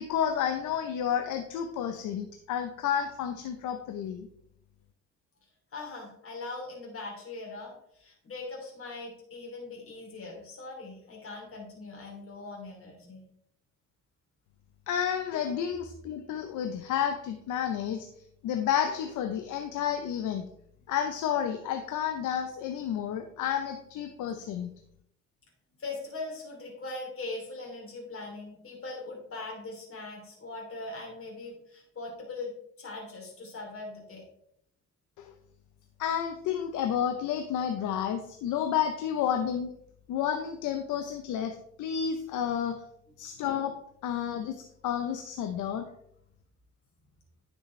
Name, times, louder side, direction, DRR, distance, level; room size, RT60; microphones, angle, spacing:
voice 1, 0.0-4.3 14.9-18.1 18.4-20.5 20.9-24.7 35.2-35.3 36.0-39.7 40.1-42.8 43.2-45.9, left 9 dB, 85° left, 7 dB, 0.8 m, -31 dB
voice 2, 5.7-13.2 25.8-34.2 43.3-43.5, left 3 dB, 45° left, -1 dB, 3.1 m, -41 dB
10.0 x 6.3 x 3.2 m, 0.72 s
cardioid pair, 90°, 30 cm